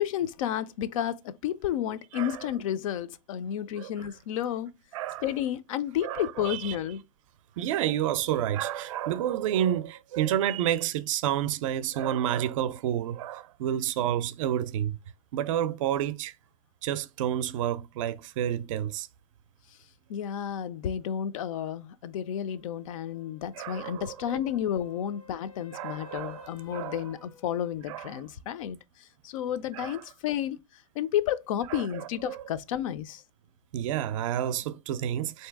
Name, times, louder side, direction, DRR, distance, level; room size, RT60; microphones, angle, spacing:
voice 1, 0.0-4.7 5.2-7.0 20.1-28.8 29.2-30.6 31.0-33.2, left 10 dB, 65° left, 0.4 m, -31 dB
voice 2, 2.1-2.4 3.8-3.9 4.9-5.3 6.0-6.8 7.6-15.0 15.3-16.3 16.8-19.1 23.6-24.4 25.7-27.0 27.9-28.1 29.7-30.0 31.7-32.4 33.7-35.5, right 11 dB, 60° right, 0.4 m, -30 dB
sound 1, 22.5-28.1 32.2-32.3, left 7 dB, 85° left, 1.0 m, -53 dB
3.8 x 2.7 x 3.3 m
supercardioid pair, 165°, 18 cm